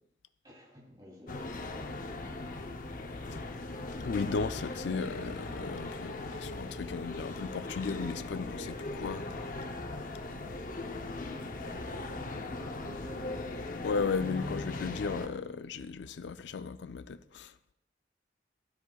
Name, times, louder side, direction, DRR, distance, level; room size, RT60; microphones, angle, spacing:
voice 1, 0.4-3.0 10.2-13.7, left 1 dB, 20° right, 2.9 m, -53 dB
sound 1, 1.3-15.3, left 2 dB, 50° left, 0.7 m, -39 dB
voice 2, 4.0-9.3 13.8-17.5, left 5 dB, 80° left, 0.4 m, -35 dB
13.0 x 12.5 x 2.3 m
head